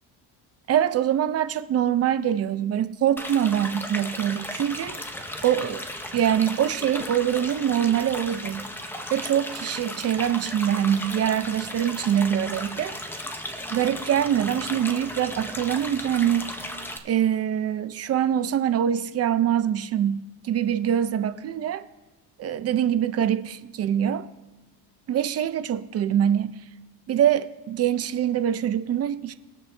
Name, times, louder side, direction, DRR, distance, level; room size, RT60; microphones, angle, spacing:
voice 1, 0.7-4.9 5.4-5.8 6.1-8.7 9.1-12.9 13.7-16.5 17.0-21.8 22.4-24.3 25.1-26.6 27.1-29.3, right 10 dB, 35° right, 0.5 m, -24 dB
sound 1, 3.2-17.0, left 1 dB, 5° left, 0.6 m, -35 dB
21.0 x 7.3 x 3.3 m
cardioid pair, 165°, 41 cm